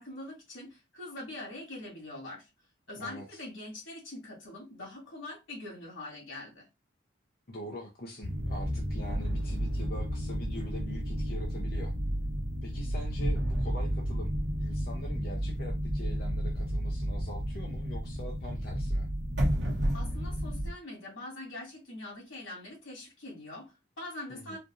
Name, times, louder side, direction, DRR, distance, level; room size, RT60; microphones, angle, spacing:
voice 1, 0.0-2.5 2.9-6.7 19.9-24.6, left 2 dB, 85° left, 2.5 m, -43 dB
voice 2, 3.0-3.4 7.5-11.9 12.6-14.3 14.6-19.1 24.3-24.6, equal, 50° left, 0.7 m, -43 dB
sound 1, 8.2-20.7, equal, 60° right, 1.0 m, -32 dB
4.4 x 2.5 x 2.5 m
head